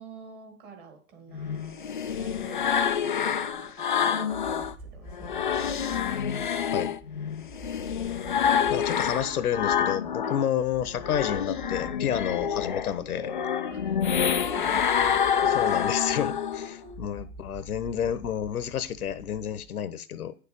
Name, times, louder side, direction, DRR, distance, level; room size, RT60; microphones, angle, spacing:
voice 1, 0.0-6.0 6.4-6.8 10.2-10.3 13.7-14.0 14.3-15.3 16.6-17.0, right 5 dB, 20° right, 2.2 m, -47 dB
sound 1, 1.3-4.7 5.1-10.5 10.9-16.7, left 8 dB, 35° left, 0.4 m, -27 dB
sound 2, 4.3-19.8, right 1 dB, ahead, 1.4 m, -46 dB
voice 2, 8.7-13.3 15.4-20.3, left 9 dB, 65° left, 1.0 m, -30 dB
9.6 x 6.8 x 5.3 m
hypercardioid pair, 150°, 48 cm